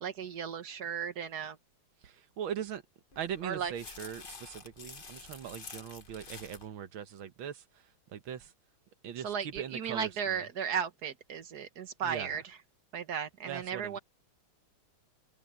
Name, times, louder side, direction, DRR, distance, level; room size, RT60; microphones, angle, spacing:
voice 1, 0.0-1.6 3.4-3.7 9.2-12.6 12.9-14.0, right 7 dB, 50° right, 1.8 m, -35 dB
voice 2, 2.0-2.8 3.2-8.5 9.0-10.4 12.0-12.4 13.5-14.0, right 9 dB, 70° right, 2.0 m, -41 dB
sound 1, 3.1-6.7, left 4 dB, 30° left, 1.1 m, -49 dB
omnidirectional pair, 2.3 m